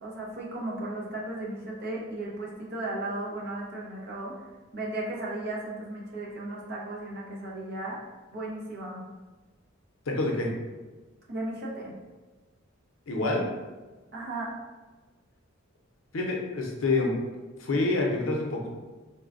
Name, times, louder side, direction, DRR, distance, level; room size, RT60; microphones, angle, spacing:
voice 1, 0.0-4.3 4.7-8.0 8.3-9.0 11.3-11.9 14.1-14.5, right 2 dB, 50° right, -4 dB, 0.7 m, -35 dB
voice 2, 10.1-10.5 13.1-13.4 16.1-17.1 17.6-18.7, left 2 dB, 75° left, 0 dB, 0.6 m, -27 dB
3.9 x 2.1 x 2.5 m, 1.2 s
head